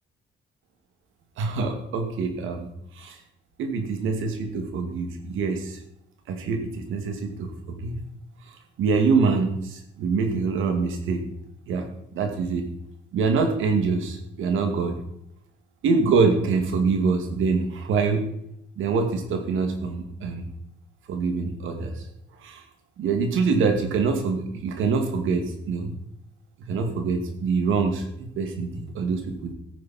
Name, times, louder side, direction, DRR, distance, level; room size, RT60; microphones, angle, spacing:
voice 1, 1.4-2.7 2.9-3.2 3.6-5.8 6.3-8.0 8.8-11.2 11.7-11.8 12.1-12.6 13.1-15.0 15.8-18.2 18.8-20.5 21.1-22.0 22.4-22.6 23.0-25.9 26.7-29.5, right 4 dB, 85° right, 5 dB, 2.3 m, -25 dB
13.5 x 9.7 x 4.4 m, 0.75 s
cardioid pair, 90°, 20 cm